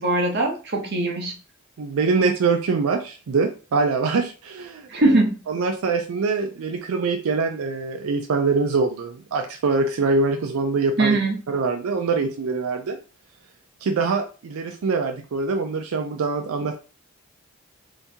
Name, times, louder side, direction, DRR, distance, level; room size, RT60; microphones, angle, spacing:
voice 1, 0.0-1.3 4.9-5.4 11.0-11.4, right 2 dB, 50° right, 2 dB, 0.8 m, -21 dB
voice 2, 1.8-5.2 5.5-11.2 11.5-13.0 13.8-16.8, right 4 dB, 85° right, 5 dB, 0.4 m, -24 dB
2.8 x 2.6 x 3.5 m, 0.34 s
head